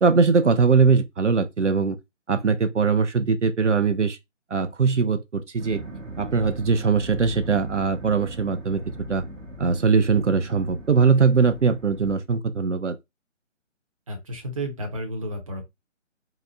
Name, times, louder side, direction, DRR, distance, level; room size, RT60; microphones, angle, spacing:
voice 1, 0.0-2.0 2.3-4.2 4.5-5.8 6.2-8.8 9.1-9.2 9.6-13.0, right 5 dB, 70° right, 0.7 m, -21 dB
sound 1, 5.6-12.1, right 1 dB, 90° right, 1.0 m, -39 dB
voice 2, 14.1-15.6, right 1 dB, 30° right, 0.7 m, -32 dB
4.1 x 2.1 x 3.7 m
figure-of-eight pair, 145°, 38 cm